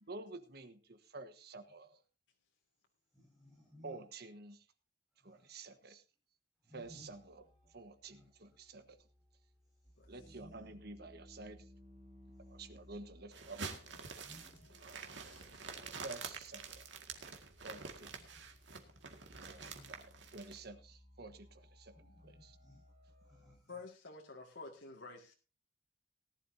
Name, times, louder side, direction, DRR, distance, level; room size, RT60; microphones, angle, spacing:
voice 1, 0.1-2.0 3.8-4.6 5.2-6.0 6.7-7.4 7.7-9.0 10.1-11.7 12.5-13.6 14.8-15.4 16.0-16.8 17.6-18.1 19.4-19.6 19.9-21.9 22.2-22.6, right 3 dB, 60° right, 1.3 m, -50 dB
voice 2, 3.1-4.0 5.1-5.7 6.6-7.2 8.1-8.6 9.6-10.7 12.3-12.5 14.1-15.1 18.0-18.5 18.8-19.1 19.4-20.0 21.9-22.8 23.2-23.9, left 1 dB, 5° right, 5.8 m, -62 dB
sound 1, 6.8-23.6, left 1 dB, 40° right, 2.8 m, -62 dB
sound 2, 13.3-20.6, right 5 dB, 85° right, 2.0 m, -48 dB
voice 3, 15.3-15.8 23.7-25.3, left 3 dB, 85° left, 2.1 m, -51 dB
18.5 x 11.5 x 2.8 m
head